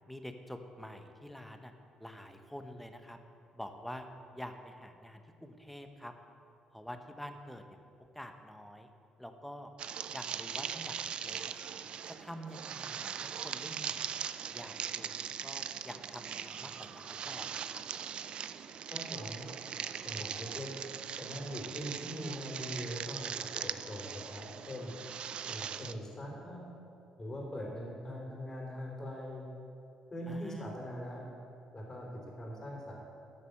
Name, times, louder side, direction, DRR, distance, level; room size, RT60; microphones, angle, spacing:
voice 1, 0.1-1.7 2.0-3.2 3.5-4.1 4.3-6.1 6.7-7.6 8.1-8.9 9.2-9.7 10.1-11.7 12.2-14.2 14.5-17.8 30.3-30.7, equal, 5° left, 6 dB, 1.0 m, -47 dB
sound 1, 9.8-25.9, right 8 dB, 55° right, 0.4 m, -40 dB
voice 2, 18.9-19.4 20.0-20.7 21.2-24.9 25.5-26.6 27.2-29.4 30.1-31.2 31.7-32.1 32.4-33.0, equal, 25° left, -3 dB, 3.2 m, -42 dB
12.5 x 6.8 x 6.6 m, 2.6 s
cardioid pair, 90°, 2 cm